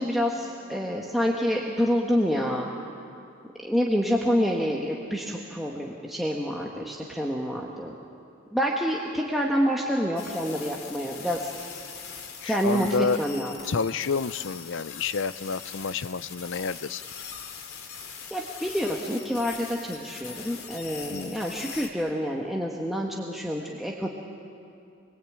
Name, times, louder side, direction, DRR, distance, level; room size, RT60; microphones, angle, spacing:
voice 1, 0.0-2.7 3.6-7.9 8.5-11.5 12.4-13.5 18.3-24.1, equal, ahead, -3 dB, 1.6 m, -27 dB
sound 1, 10.2-21.9, left 6 dB, 85° left, 2.9 m, -41 dB
voice 2, 12.4-13.2 13.6-17.0 21.1-21.4, left 5 dB, 65° left, 16 dB, 0.6 m, -29 dB
25.0 x 23.0 x 8.9 m, 2.6 s
head